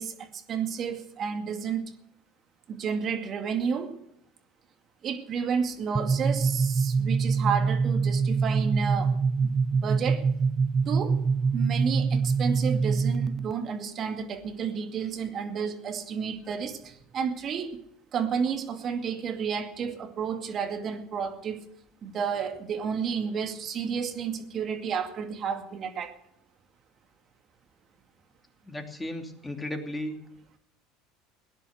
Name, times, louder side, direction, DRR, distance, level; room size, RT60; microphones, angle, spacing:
voice 1, 0.0-1.8 2.7-4.0 5.0-9.1 9.4-9.5 9.8-10.2 10.9-11.2 11.5-17.8 18.1-21.6 22.0-26.1, right 6 dB, 40° right, 2.2 m, -31 dB
sound 1, 5.9-13.5, right 5 dB, 20° right, 0.6 m, -25 dB
voice 2, 28.7-30.1, left 1 dB, 10° left, 2.8 m, -35 dB
18.0 x 10.5 x 6.5 m
hypercardioid pair, 75°, 0 cm